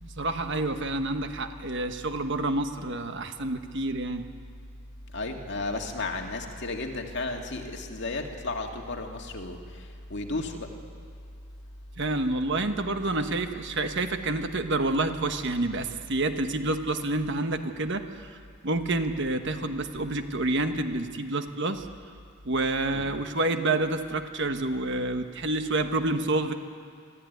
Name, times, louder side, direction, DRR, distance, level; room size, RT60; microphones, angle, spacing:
voice 1, 0.0-4.2 12.0-18.0 18.6-21.8 22.4-26.5, right 2 dB, 60° right, 7 dB, 1.3 m, -28 dB
voice 2, 5.1-10.7 22.9-23.1, left 2 dB, 55° left, 2 dB, 2.3 m, -34 dB
25.5 x 14.5 x 9.4 m, 2.4 s
head